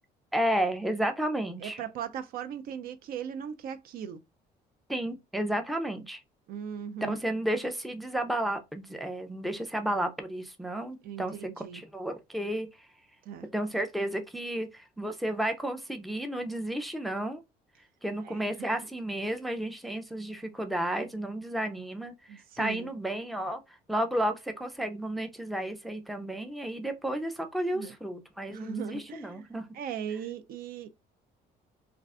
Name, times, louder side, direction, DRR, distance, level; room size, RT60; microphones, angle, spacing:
voice 1, 0.3-1.8 4.9-6.2 7.0-12.7 13.5-17.4 18.0-29.7, right 1 dB, ahead, 0.4 m, -32 dB
voice 2, 1.6-4.2 6.5-7.2 11.0-11.8 13.3-13.5 18.2-18.7 22.3-22.9 27.7-27.9 28.5-29.5 29.7-30.9, right 8 dB, 60° right, 0.4 m, -38 dB
2.4 x 2.3 x 3.5 m
cardioid pair, 110°, 17 cm